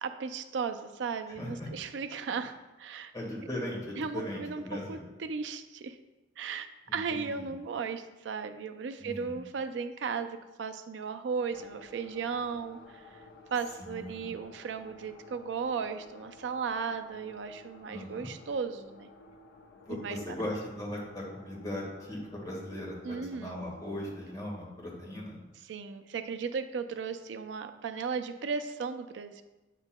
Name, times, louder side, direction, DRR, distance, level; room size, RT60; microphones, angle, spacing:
voice 1, 0.0-3.1 4.0-4.6 4.9-6.0 6.4-13.0 13.5-19.1 19.9-20.2 23.0-23.6 25.7-29.4, right 5 dB, 90° right, 9 dB, 0.4 m, -36 dB
voice 2, 1.4-1.7 3.1-5.0 6.9-7.5 9.0-9.3 13.8-14.3 17.9-18.3 19.9-25.4, left 1 dB, 20° left, -3 dB, 1.6 m, -39 dB
sound 1, 11.5-24.6, left 3 dB, 70° left, 0.7 m, -55 dB
7.8 x 6.0 x 2.2 m, 1.1 s
head